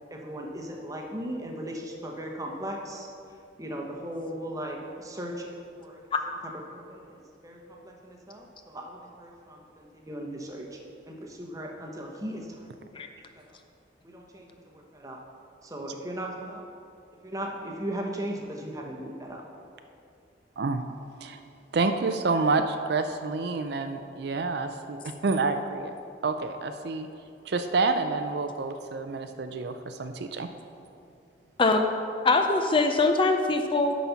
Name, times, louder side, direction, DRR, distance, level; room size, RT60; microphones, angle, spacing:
voice 1, 0.1-3.1 3.6-6.1 6.7-10.8 11.1-13.1 13.4-13.5 14.0-14.5 14.7-15.2 15.6-16.6 17.2-19.4, right 1 dB, 20° right, 0 dB, 1.0 m, -37 dB
voice 2, 21.7-25.9 26.2-27.1 27.5-30.5, right 3 dB, 60° right, 8 dB, 0.4 m, -28 dB
voice 3, 31.6-31.9 32.2-34.0, left 3 dB, 25° left, 6 dB, 0.4 m, -22 dB
11.5 x 4.2 x 5.7 m, 2.5 s
head